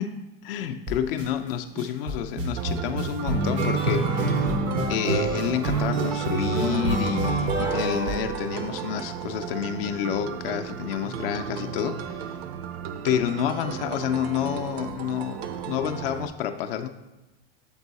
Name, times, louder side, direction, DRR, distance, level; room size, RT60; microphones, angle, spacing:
voice 1, 0.0-4.5 4.9-12.4 13.0-16.9, left 9 dB, 65° left, 7 dB, 0.5 m, -29 dB
sound 1, 0.9-1.3 1.8-9.0, right 3 dB, 20° right, 0.3 m, -26 dB
sound 2, 2.6-16.3, right 7 dB, 85° right, 0.6 m, -36 dB
7.1 x 4.5 x 4.0 m, 1.1 s
supercardioid pair, 170°, 30 cm